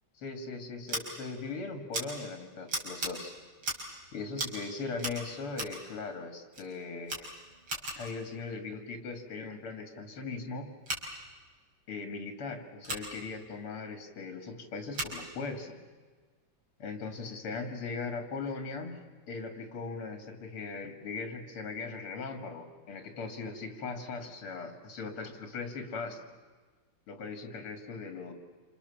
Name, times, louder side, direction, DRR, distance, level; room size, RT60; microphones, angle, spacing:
voice 1, 0.2-3.3 4.1-7.4 7.9-10.7 11.9-15.8 16.8-26.2 27.1-28.3, left 4 dB, 80° left, 6 dB, 3.4 m, -39 dB
Scissors, 0.9-1.0 1.9-2.0 2.7-3.1 3.6-3.9 4.3-4.6 5.0-5.8 6.5-6.7 7.0-8.1 10.8-11.0 12.8-13.1 14.9-15.2, right 2 dB, 75° right, 5.6 m, -36 dB
28.0 x 27.5 x 7.2 m, 1.4 s
omnidirectional pair, 2.4 m